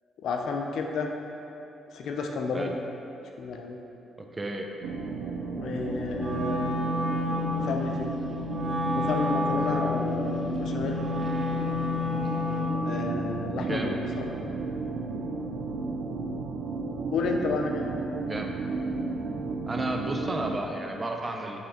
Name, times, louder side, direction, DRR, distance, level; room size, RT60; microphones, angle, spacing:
voice 1, 0.2-1.1 1.9-2.8 3.4-3.8 5.5-6.8 7.6-8.2 8.9-11.0 12.8-14.3 17.1-17.9, left 4 dB, 70° left, 3 dB, 0.6 m, -31 dB
voice 2, 4.2-4.7 13.6-14.0 18.3-18.5 19.7-21.6, right 2 dB, 25° right, 2 dB, 0.7 m, -33 dB
sound 1, 4.8-20.6, right 3 dB, 75° right, 0.6 m, -33 dB
Wind instrument woodwind instrument, 6.1-12.9, left 3 dB, 40° right, 1.1 m, -30 dB
7.6 x 3.3 x 5.8 m, 2.9 s
cardioid pair, 90°, 0 cm